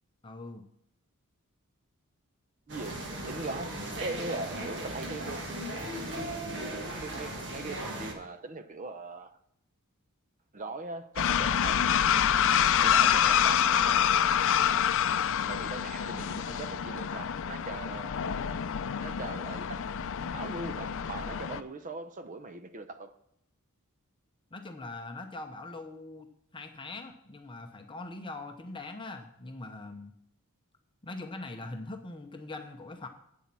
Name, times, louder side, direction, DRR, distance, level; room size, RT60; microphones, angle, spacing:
voice 1, 0.2-0.6 24.5-26.3 26.5-30.1 31.0-33.1, left 2 dB, 20° left, 0.7 m, -42 dB
voice 2, 2.7-5.5 6.6-9.4 10.5-12.2 12.8-14.3 15.4-18.2 19.0-19.9 20.3-23.2, right 3 dB, 35° right, 0.7 m, -41 dB
sound 1, 2.7-8.1, right 1 dB, 55° right, 1.6 m, -37 dB
sound 2, 11.2-21.6, left 9 dB, 60° left, 0.5 m, -27 dB
8.6 x 7.2 x 6.0 m
head